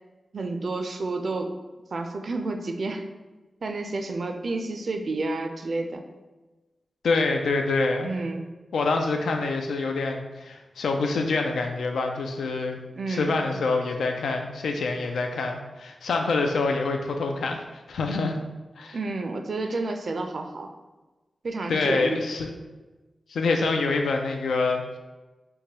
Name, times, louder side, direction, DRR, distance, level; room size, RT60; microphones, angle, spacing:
voice 1, 0.3-1.5 1.9-3.0 3.6-6.0 8.0-8.4 13.0-13.4 18.9-20.7 21.4-22.2, right 3 dB, 65° right, 5 dB, 0.4 m, -30 dB
voice 2, 7.0-8.1 8.7-12.8 13.1-18.4 18.8-19.0 21.7-22.5 23.3-25.0, left 3 dB, 90° left, 4 dB, 0.3 m, -26 dB
4.6 x 2.2 x 2.8 m, 1.2 s
cardioid pair, 40°, 0 cm